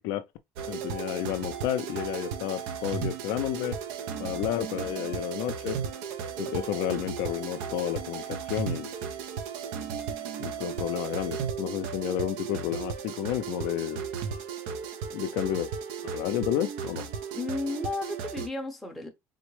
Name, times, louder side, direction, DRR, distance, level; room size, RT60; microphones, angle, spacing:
sound 1, 0.6-18.5, right 7 dB, 75° right, 0.5 m, -35 dB
voice 1, 0.7-3.8 4.2-5.8 6.4-8.9 10.4-14.0 15.1-15.7 16.0-17.1, left 12 dB, 65° left, 0.4 m, -31 dB
voice 2, 17.3-19.1, left 2 dB, ahead, 0.6 m, -33 dB
3.7 x 2.1 x 3.0 m
cardioid pair, 165°, 7 cm